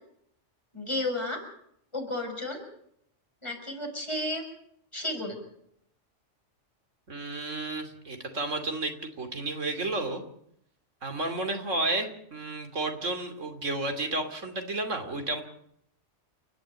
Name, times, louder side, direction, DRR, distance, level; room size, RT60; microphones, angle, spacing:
voice 1, 0.7-1.4 1.9-2.6 3.4-4.4 4.9-5.4, left 1 dB, 25° left, 1 dB, 6.2 m, -32 dB
voice 2, 7.1-10.2 11.0-15.4, right 2 dB, 85° right, 6 dB, 3.1 m, -32 dB
29.5 x 11.0 x 9.3 m, 0.72 s
omnidirectional pair, 1.3 m